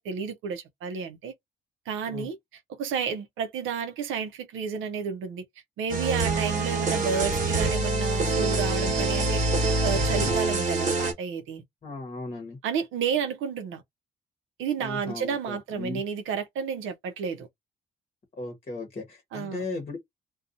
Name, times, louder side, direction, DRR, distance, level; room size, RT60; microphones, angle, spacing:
voice 1, 0.0-1.3 1.9-2.4 2.8-5.4 5.8-11.6 12.6-13.8 14.6-17.5 19.3-19.6, right 6 dB, 85° right, 0.6 m, -31 dB
sound 1, 5.9-11.1, right 2 dB, 40° right, 1.2 m, -25 dB
voice 2, 11.8-12.6 14.8-16.0 18.4-20.0, left 3 dB, 35° left, 0.9 m, -36 dB
2.6 x 2.2 x 2.5 m
cardioid pair, 90°, 20 cm